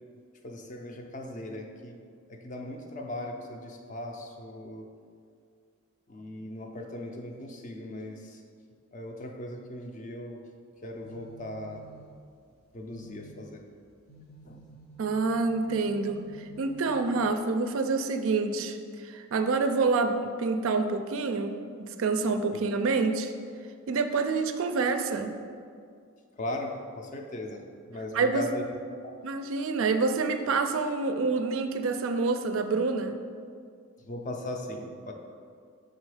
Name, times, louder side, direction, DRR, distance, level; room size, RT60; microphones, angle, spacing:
voice 1, 0.4-1.9 2.3-4.8 6.1-8.4 8.9-10.4 10.8-11.9 12.7-13.6 14.4-14.6 22.5-22.6 26.4-28.6 29.0-29.2 34.0-35.1, left 1 dB, 35° left, 3 dB, 0.4 m, -38 dB
sound 1, 10.8-17.7, right 3 dB, 75° left, 1.2 m, -53 dB
voice 2, 15.0-23.3 23.9-25.3 28.1-28.4 29.2-33.2, right 4 dB, 65° right, 8 dB, 0.4 m, -27 dB
5.2 x 3.8 x 4.9 m, 2.2 s
head